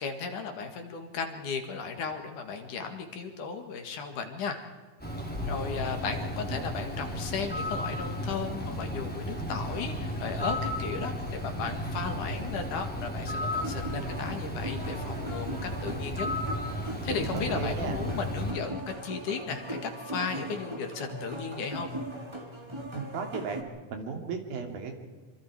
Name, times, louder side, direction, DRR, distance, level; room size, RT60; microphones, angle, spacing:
voice 1, 0.0-4.6 5.5-16.3 17.0-21.9, left 5 dB, 60° left, 6 dB, 3.2 m, -35 dB
Bird, 5.0-18.5, left 1 dB, 5° left, 2.8 m, -34 dB
sound 1, 13.5-23.6, right 1 dB, 15° right, 1.2 m, -39 dB
voice 2, 17.3-18.0 22.9-23.6 23.9-24.9, right 5 dB, 75° right, 4 dB, 4.2 m, -35 dB
26.0 x 25.5 x 4.8 m, 1.4 s
omnidirectional pair, 4.2 m